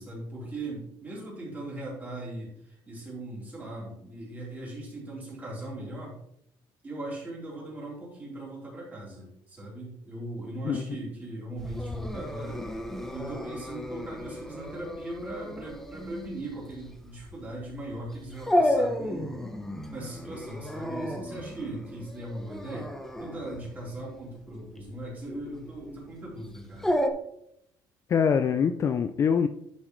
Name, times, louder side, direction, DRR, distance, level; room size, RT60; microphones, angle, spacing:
voice 1, 0.0-6.2 6.8-12.6 13.1-19.4 19.9-26.9, right 1 dB, 20° right, -5 dB, 3.9 m, -39 dB
voice 2, 10.6-11.0 28.1-29.5, left 7 dB, 35° left, 9 dB, 0.4 m, -24 dB
Dog, 11.6-27.1, left 1 dB, 5° left, 0.8 m, -33 dB
11.5 x 7.2 x 3.2 m, 0.73 s
cardioid pair, 170°, 9 cm